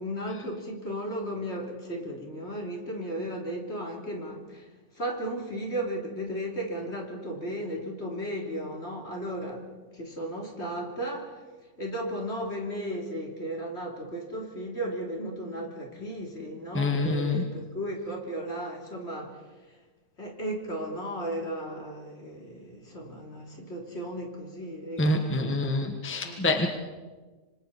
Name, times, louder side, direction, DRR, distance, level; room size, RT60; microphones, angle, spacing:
voice 1, 0.0-4.7 5.0-9.7 9.9-11.3 11.8-19.4 20.2-25.4 26.2-26.7, right 1 dB, 50° left, 0 dB, 3.5 m, -35 dB
voice 2, 16.7-17.4 25.0-26.7, left 2 dB, 10° left, 4 dB, 1.4 m, -26 dB
26.0 x 26.0 x 4.2 m, 1.3 s
omnidirectional pair, 1.5 m